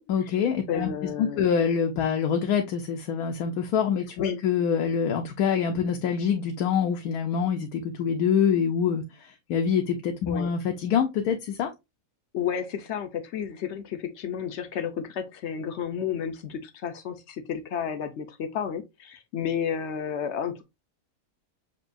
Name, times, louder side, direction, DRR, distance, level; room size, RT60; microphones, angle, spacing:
voice 1, 0.1-0.9 1.2-11.7, left 7 dB, 80° left, 1.1 m, -25 dB
voice 2, 0.7-1.5 4.2-4.4 10.3-10.5 12.3-20.6, left 8 dB, 60° left, 0.8 m, -31 dB
6.0 x 2.7 x 2.5 m
omnidirectional pair, 1.6 m